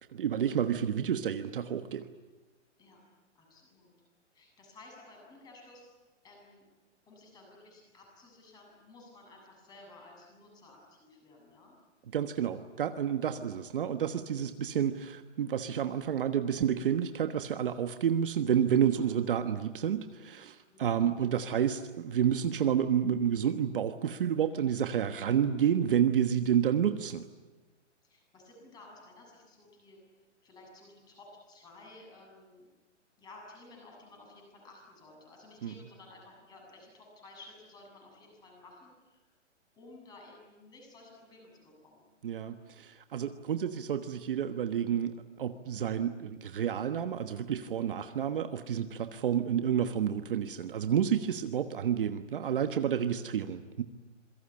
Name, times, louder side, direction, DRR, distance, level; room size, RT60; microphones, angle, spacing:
voice 1, 0.1-2.1 12.1-27.3 35.6-35.7 42.2-53.8, right 9 dB, 45° right, 8 dB, 1.3 m, -30 dB
voice 2, 3.3-3.9 4.3-5.9 6.2-6.6 7.1-11.8 18.9-19.1 20.7-21.1 28.0-30.0 30.4-32.7 33.2-39.2 39.7-42.0 53.3-53.6, left 2 dB, 10° left, 0 dB, 7.6 m, -54 dB
27.0 x 23.0 x 8.7 m, 1.2 s
hypercardioid pair, 165°, 36 cm